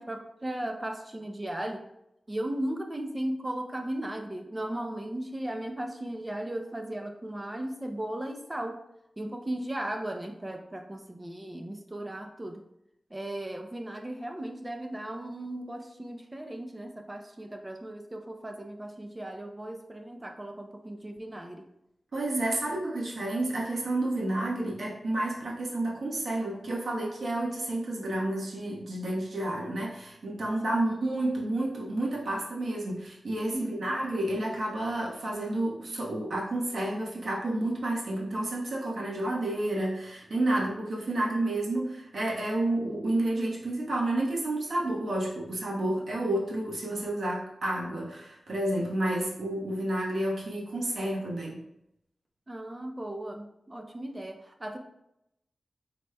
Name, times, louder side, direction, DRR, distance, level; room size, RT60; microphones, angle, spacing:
voice 1, 0.0-1.8 2.3-8.8 9.2-12.6 13.1-21.7 30.7-30.9 33.5-34.0 52.5-54.8, right 1 dB, 20° right, 4 dB, 0.6 m, -36 dB
voice 2, 22.1-51.6, right 1 dB, 70° right, -4 dB, 1.1 m, -30 dB
4.8 x 4.1 x 2.2 m, 0.82 s
wide cardioid pair, 85°, 0 cm